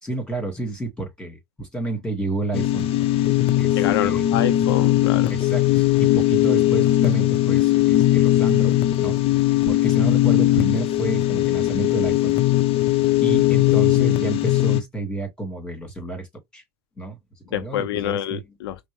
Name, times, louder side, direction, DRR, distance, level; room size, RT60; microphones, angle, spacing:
voice 1, 0.0-2.9 3.6-4.2 5.3-9.1 9.6-12.4 13.2-16.3 16.5-16.6 17.0-17.2 17.5-18.4, right 2 dB, 5° left, 2.5 m, -30 dB
sound 1, 2.5-14.8, left 14 dB, 50° left, 0.7 m, -19 dB
voice 2, 3.8-5.3 17.5-18.9, left 11 dB, 85° left, 0.6 m, -27 dB
5.2 x 2.1 x 3.5 m
hypercardioid pair, 95°, 13 cm